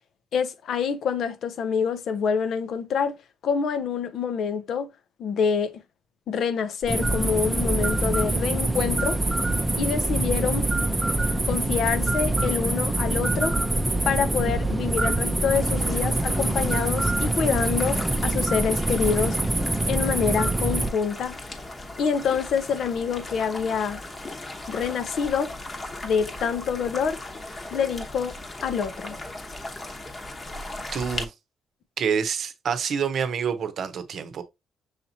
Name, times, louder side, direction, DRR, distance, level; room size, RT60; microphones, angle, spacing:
voice 1, 0.3-3.2 3.4-4.9 5.2-5.8 6.3-9.2 9.8-10.7 11.4-13.6 14.1-19.4 19.9-21.4 22.0-24.0 24.7-25.5 26.0-27.2 27.7-28.3 28.6-29.2, left 6 dB, 70° left, 0.6 m, -26 dB
sound 1, 6.8-20.9, right 2 dB, 15° right, 0.5 m, -25 dB
sound 2, 15.5-31.2, left 2 dB, 30° left, 1.0 m, -38 dB
voice 2, 30.9-31.3 32.0-34.4, right 7 dB, 60° right, 0.7 m, -27 dB
6.4 x 2.9 x 2.7 m
cardioid pair, 90°, 0 cm